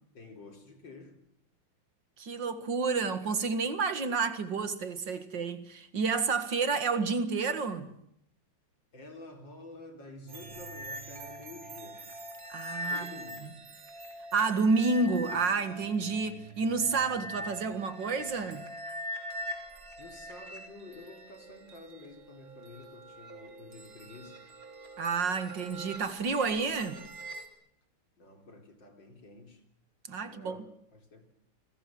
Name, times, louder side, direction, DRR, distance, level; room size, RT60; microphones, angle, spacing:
voice 1, 0.1-1.2 8.9-12.1 12.9-13.6 20.0-24.4 28.2-29.6 30.2-31.2, left 2 dB, 75° left, 4.7 m, -49 dB
voice 2, 2.2-7.9 12.5-13.1 14.3-18.6 25.0-27.0 30.1-30.6, right 4 dB, 70° right, 2.5 m, -30 dB
sound 1, 10.3-27.5, equal, 90° right, 4.0 m, -43 dB
29.0 x 21.0 x 7.7 m
omnidirectional pair, 2.0 m